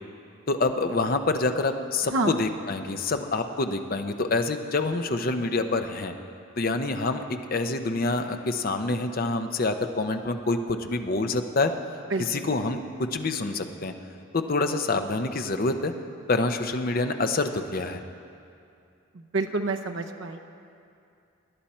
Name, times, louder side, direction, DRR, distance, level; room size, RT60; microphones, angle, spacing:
voice 1, 0.5-6.1 6.6-11.7 12.2-13.9 14.3-15.9 16.3-18.0, left 3 dB, 45° left, 7 dB, 0.6 m, -27 dB
voice 2, 2.1-2.4 12.1-12.5 19.3-20.4, right 3 dB, 65° right, 5 dB, 0.6 m, -28 dB
18.5 x 10.5 x 4.3 m, 2.5 s
head